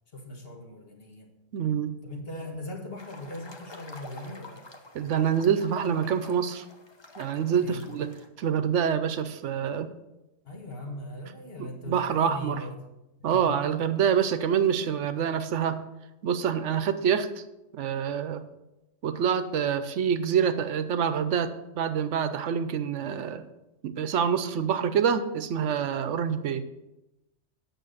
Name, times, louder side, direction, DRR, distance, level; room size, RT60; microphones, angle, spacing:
voice 1, 0.1-1.3 2.0-4.6 7.6-7.9 10.4-12.8 13.3-13.5, left 1 dB, 55° left, 1 dB, 1.8 m, -39 dB
voice 2, 1.5-2.0 4.9-6.6 7.2-8.1 8.4-9.9 11.6-12.6 13.2-15.8 16.2-17.3 17.7-18.4 19.0-23.4 23.8-26.7, right 8 dB, 75° right, 11 dB, 1.0 m, -26 dB
sound 1, 3.0-8.3, left 2 dB, 25° left, 0.8 m, -47 dB
9.1 x 6.4 x 6.4 m, 0.97 s
omnidirectional pair, 1.2 m